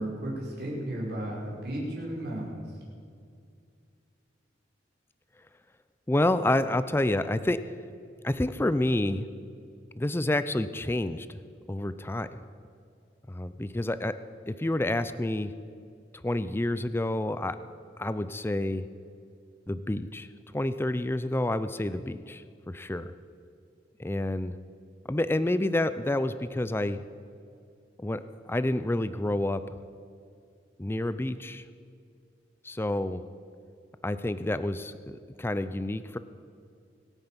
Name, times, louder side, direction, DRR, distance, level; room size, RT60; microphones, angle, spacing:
voice 1, 0.0-2.7, right 1 dB, 60° right, -4 dB, 5.3 m, -34 dB
voice 2, 6.1-7.6 8.2-9.3 10.0-11.3 11.7-12.4 13.3-14.2 14.5-15.5 16.2-17.6 18.0-18.9 19.7-20.3 20.5-23.1 24.0-24.6 25.1-27.0 28.0-28.2 28.5-29.8 30.8-31.6 32.6-33.2 34.0-36.2, left 1 dB, 10° left, 13 dB, 0.4 m, -28 dB
25.0 x 9.0 x 6.0 m, 2.4 s
head